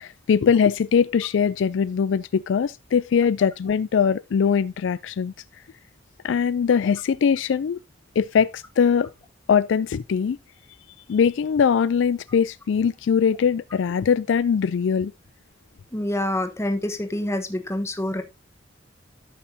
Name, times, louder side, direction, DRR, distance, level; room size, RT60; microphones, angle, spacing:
voice 1, 0.0-5.3 6.2-7.8 8.2-9.1 9.5-10.4 11.1-15.1, left 6 dB, 75° left, 0.4 m, -21 dB
voice 2, 15.9-18.2, left 1 dB, 15° left, 1.1 m, -26 dB
14.0 x 5.6 x 2.7 m
head